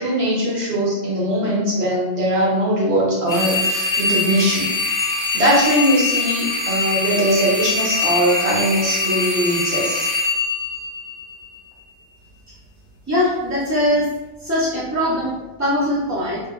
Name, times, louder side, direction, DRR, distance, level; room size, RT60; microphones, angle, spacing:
voice 1, 0.0-4.7 5.3-10.1, equal, 70° right, -6 dB, 1.2 m, -20 dB
sound 1, 3.3-11.5, left 3 dB, 50° left, 0.6 m, -23 dB
voice 2, 13.1-14.1 14.4-15.3 15.6-16.4, left 1 dB, 25° right, -9 dB, 0.4 m, -21 dB
3.2 x 2.1 x 2.3 m, 1.0 s
omnidirectional pair, 1.1 m